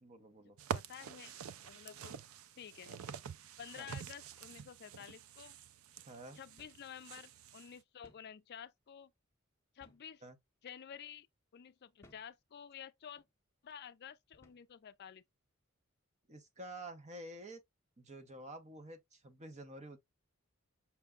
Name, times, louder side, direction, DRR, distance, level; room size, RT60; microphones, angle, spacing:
voice 1, 0.0-0.6 3.8-4.0 6.1-6.4 10.2-10.4 16.3-17.6 18.0-20.0, right 1 dB, 35° right, 0.9 m, -49 dB
sound 1, 0.6-7.7, right 7 dB, 75° right, 0.4 m, -47 dB
voice 2, 0.7-2.2 2.6-3.0 3.6-5.6 6.3-9.1 9.7-10.2 10.6-11.3 11.5-13.2 13.6-15.2, left 8 dB, 50° left, 0.4 m, -51 dB
sound 2, 6.6-6.9 7.2-7.3 8.0-8.3 9.8-10.2 10.8-11.0 12.0-12.4 13.1-13.3 14.3-14.7, left 1 dB, 10° left, 0.8 m, -65 dB
5.9 x 2.2 x 3.7 m
head